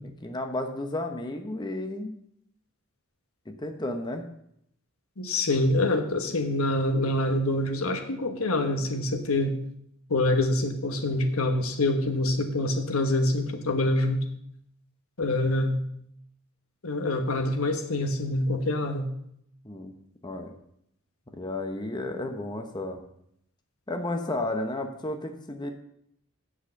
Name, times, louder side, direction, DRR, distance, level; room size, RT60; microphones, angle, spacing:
voice 1, 0.2-2.2 3.5-4.3 19.6-19.9 20.2-20.5 21.3-23.0 23.9-25.7, left 2 dB, 20° left, 5 dB, 0.9 m, -32 dB
voice 2, 5.2-9.6 10.1-14.2 15.2-15.8 16.8-19.1, left 1 dB, 90° left, 6 dB, 1.3 m, -26 dB
7.9 x 6.6 x 7.5 m, 0.73 s
head